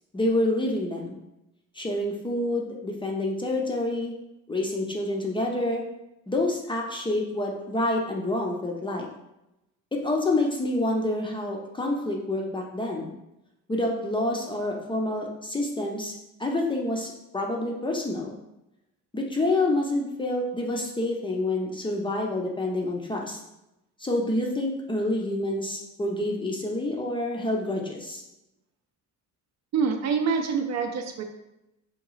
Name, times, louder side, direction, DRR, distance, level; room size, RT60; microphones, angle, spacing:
voice 1, 0.1-1.2 1.7-4.1 4.5-5.8 6.3-9.1 9.9-13.1 13.7-16.1 16.4-18.4 19.1-23.4 24.0-28.2, left 1 dB, 15° left, 0 dB, 0.4 m, -27 dB
voice 2, 29.7-31.2, right 5 dB, 50° right, 5 dB, 0.5 m, -26 dB
3.6 x 2.3 x 3.0 m, 0.91 s
cardioid pair, 110°, 34 cm